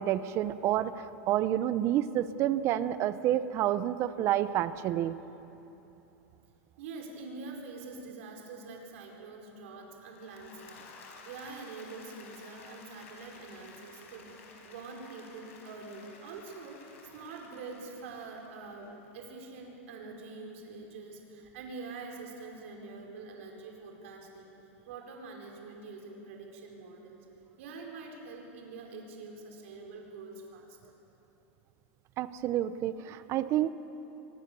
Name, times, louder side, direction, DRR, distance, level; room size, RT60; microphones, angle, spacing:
voice 1, 0.0-5.2 32.2-33.7, right 12 dB, 40° right, 14 dB, 0.8 m, -29 dB
voice 2, 6.8-24.5 24.8-27.2 27.6-30.9, right 3 dB, 70° right, 1 dB, 5.0 m, -45 dB
Applause / Crowd, 10.0-19.1, left 4 dB, 85° left, 4.6 m, -53 dB
24.5 x 21.0 x 7.0 m, 3.0 s
supercardioid pair, 140°, 7 cm